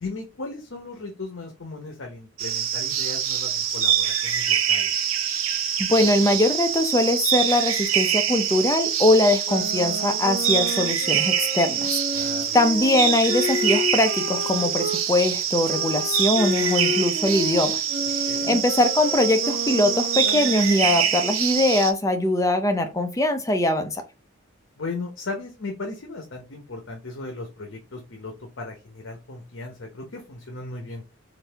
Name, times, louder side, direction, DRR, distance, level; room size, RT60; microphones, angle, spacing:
voice 1, 0.0-4.9 12.1-12.6 18.3-18.6 24.8-31.0, left 3 dB, 70° left, 0.8 m, -36 dB
sound 1, 2.4-21.9, right 8 dB, 85° right, 0.6 m, -25 dB
voice 2, 5.8-12.3 12.5-17.8 18.1-24.0, left 1 dB, 15° left, 0.5 m, -22 dB
sound 2, 9.4-15.0 15.6-21.1, left 2 dB, 70° right, 1.2 m, -31 dB
4.0 x 2.7 x 3.4 m
head